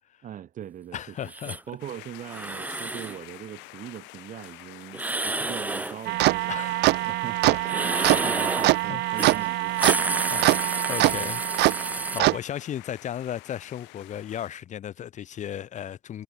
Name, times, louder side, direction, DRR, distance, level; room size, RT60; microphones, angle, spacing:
voice 1, 0.2-11.2 12.0-12.2, right 10 dB, 50° right, 6.2 m, -41 dB
voice 2, 0.9-1.6 6.5-7.0 7.5-7.6 7.9-8.3 8.9-9.3 10.3-11.4 11.7-16.2, left 10 dB, 45° left, 1.3 m, -36 dB
sound 1, 1.3-1.6 2.2-3.2 4.9-6.0 7.6-8.8 9.2-9.4 9.7-12.2, right 2 dB, 10° right, 1.1 m, -30 dB
sound 2, 1.8-14.5, left 26 dB, 90° left, 7.6 m, -47 dB
sound 3, 6.1-12.4, right 19 dB, 70° right, 1.1 m, -24 dB
cardioid pair, 125°, 18 cm